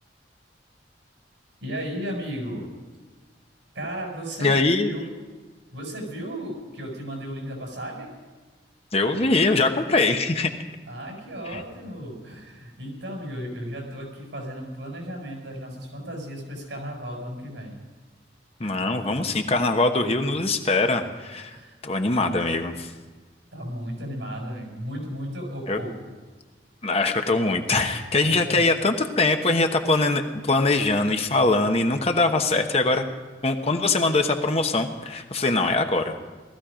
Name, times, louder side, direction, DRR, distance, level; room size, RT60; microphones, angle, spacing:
voice 1, 1.6-2.7 3.7-5.0 5.7-8.1 10.9-17.7 21.5-21.8 22.1-22.4 23.5-26.1 28.3-28.6, equal, 90° right, 0 dB, 6.5 m, -35 dB
voice 2, 4.4-4.9 8.9-10.5 11.5-11.6 18.6-21.6 21.8-22.9 25.7-25.8 26.8-33.0 33.4-36.2, left 3 dB, 35° left, 5 dB, 1.1 m, -22 dB
18.5 x 14.5 x 5.1 m, 1.4 s
head